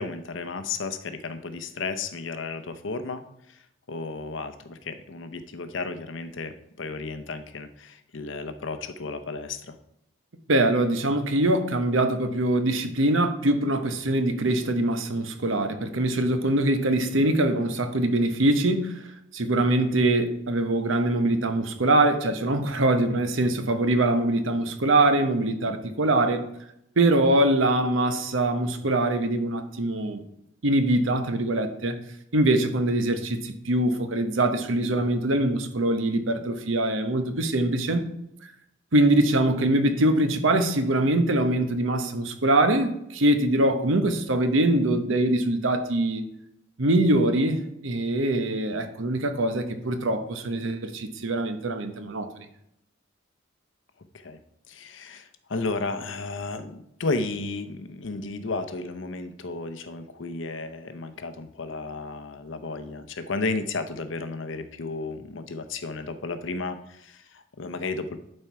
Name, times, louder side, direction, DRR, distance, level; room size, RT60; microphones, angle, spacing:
voice 1, 0.0-3.2 3.9-9.8 54.1-54.4 54.7-68.2, left 3 dB, 75° left, 9 dB, 0.7 m, -33 dB
voice 2, 10.5-19.0 19.3-26.5 27.0-30.2 30.6-32.0 32.3-38.0 38.9-46.3 46.8-52.5, right 1 dB, 85° right, 8 dB, 0.9 m, -23 dB
11.0 x 4.5 x 4.6 m, 0.78 s
head